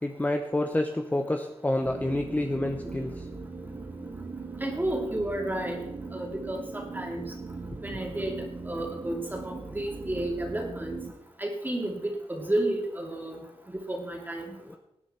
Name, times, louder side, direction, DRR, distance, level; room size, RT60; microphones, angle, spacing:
voice 1, 0.0-3.3 14.7-14.8, left 1 dB, 15° left, 5 dB, 0.9 m, -28 dB
sound 1, 1.8-11.1, right 4 dB, 45° right, 1.3 m, -39 dB
voice 2, 4.6-5.8 6.1-7.2 7.8-11.0 11.4-13.4 13.7-14.6, right 1 dB, 15° right, 0 dB, 2.8 m, -32 dB
18.5 x 9.7 x 4.4 m, 0.86 s
wide cardioid pair, 100°, 11 cm